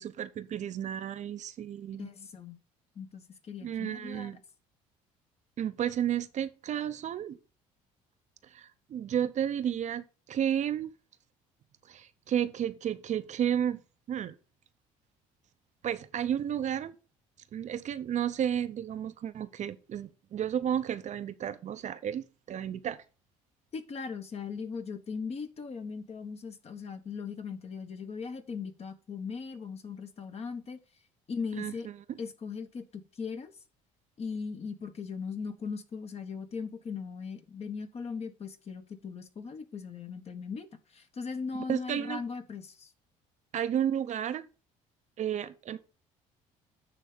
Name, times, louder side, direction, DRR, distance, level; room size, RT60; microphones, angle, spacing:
voice 1, 0.0-2.0 3.6-4.4 5.6-7.4 8.5-10.0 10.3-10.9 11.9-13.8 14.1-14.3 15.8-16.9 17.5-23.0 31.5-31.7 32.1-32.2 41.7-42.2 43.5-44.4 45.2-45.8, right 9 dB, 50° right, 0.7 m, -32 dB
voice 2, 2.0-2.6 2.9-4.4 23.7-30.8 31.3-31.9 32.2-33.5 34.2-40.7 40.9-42.9, left 5 dB, 40° left, 1.3 m, -39 dB
9.5 x 3.4 x 5.0 m
supercardioid pair, 70°, 16 cm